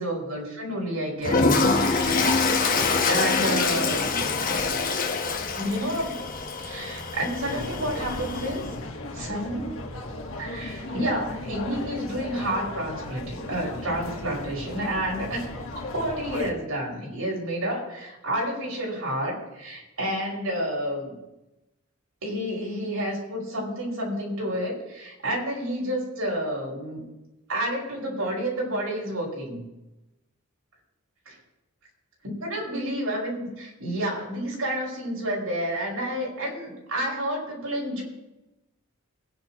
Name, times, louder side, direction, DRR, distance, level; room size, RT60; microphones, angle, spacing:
voice 1, 0.0-2.2 3.0-4.2 5.6-6.2 6.6-8.6 9.1-9.8 10.4-15.5 15.9-21.1 22.2-27.0 27.5-29.6 31.3-31.4 32.2-38.0, right 1 dB, 80° right, -3 dB, 5.7 m, -30 dB
Toilet flush, 1.2-8.7, left 4 dB, 40° left, 1.2 m, -25 dB
sound 1, 7.4-16.5, left 2 dB, 70° left, 1.6 m, -36 dB
21.5 x 10.5 x 3.0 m, 0.98 s
head